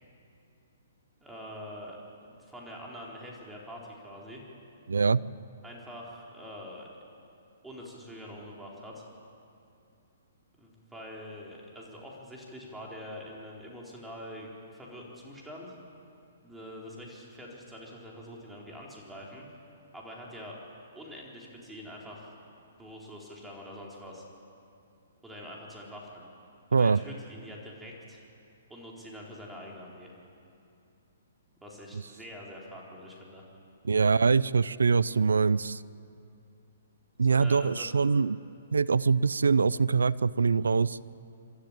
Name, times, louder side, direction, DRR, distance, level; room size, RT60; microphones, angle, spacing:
voice 1, 1.2-2.0 2.2-4.4 5.6-6.9 7.6-9.0 10.6-15.7 16.4-19.4 19.9-20.6 20.9-22.3 22.8-24.2 25.2-26.3 26.7-28.2 28.7-30.1 31.6-33.4 37.2-37.9, equal, 5° right, -3 dB, 4.3 m, -45 dB
voice 2, 4.9-5.2 26.7-27.0 33.9-35.8 37.2-38.4 38.7-41.0, right 5 dB, 85° right, 21 dB, 0.5 m, -24 dB
25.5 x 13.0 x 9.0 m, 2.7 s
hypercardioid pair, 130°, 0 cm